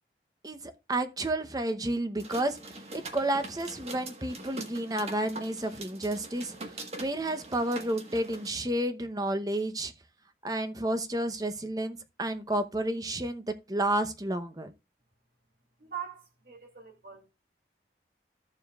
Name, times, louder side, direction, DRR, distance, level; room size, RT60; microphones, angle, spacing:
voice 1, 0.4-9.9 10.4-14.7, right 1 dB, 20° right, 0.8 m, -31 dB
sound 1, 2.2-8.5, right 2 dB, 35° right, 1.4 m, -43 dB
voice 2, 15.8-17.3, right 8 dB, 60° right, 2.6 m, -42 dB
13.5 x 7.2 x 2.3 m
head